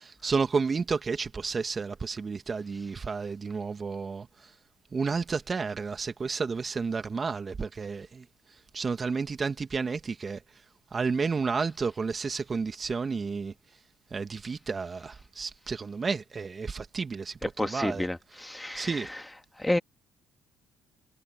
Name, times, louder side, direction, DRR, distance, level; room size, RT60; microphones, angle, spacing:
voice 1, 0.0-4.3 4.9-8.2 8.7-10.4 10.9-13.5 14.1-18.1 18.7-19.1, right 5 dB, 35° right, 2.5 m, -31 dB
voice 2, 17.6-19.2 19.6-19.8, left 1 dB, 10° left, 2.4 m, -30 dB
hypercardioid pair, 60°, 0 cm